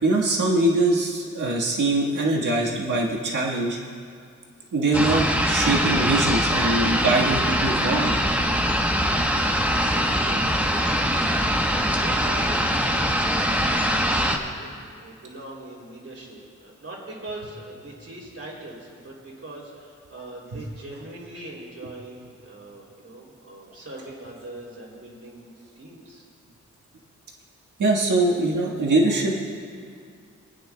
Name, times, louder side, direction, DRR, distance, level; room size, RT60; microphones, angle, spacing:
voice 1, 0.0-3.8 4.7-8.2 20.5-20.6 27.8-29.5, right 2 dB, 80° right, -3 dB, 1.7 m, -22 dB
sound 1, 4.9-14.4, equal, 5° right, 1.1 m, -22 dB
voice 2, 10.1-26.2, right 2 dB, 50° right, -3 dB, 3.1 m, -41 dB
28.0 x 9.6 x 2.3 m, 2.2 s
wide cardioid pair, 80°, 30 cm